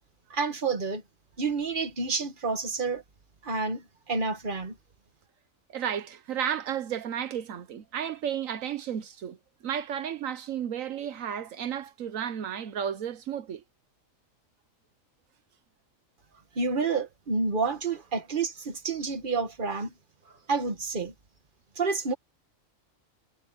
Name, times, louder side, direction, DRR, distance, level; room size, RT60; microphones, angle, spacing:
voice 1, 0.3-1.0 1.4-3.0 3.4-4.8 16.5-19.9 20.5-21.1 21.7-22.1, right 4 dB, 40° right, 1.7 m, -29 dB
voice 2, 5.7-9.4 9.6-13.6, right 9 dB, 80° right, 1.2 m, -33 dB
omnidirectional pair, 1.4 m